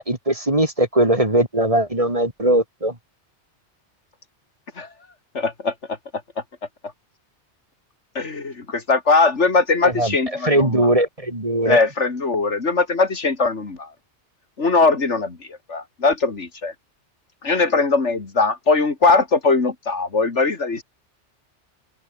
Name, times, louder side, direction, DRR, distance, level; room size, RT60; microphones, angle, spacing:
voice 1, 0.0-2.9 9.8-10.1 10.4-11.8, right 1 dB, 30° right, 3.3 m, -20 dB
voice 2, 5.3-5.7 8.1-10.9 11.6-13.9 14.6-16.7 17.4-20.8, left 3 dB, 80° left, 3.0 m, -20 dB
open air
omnidirectional pair, 1.2 m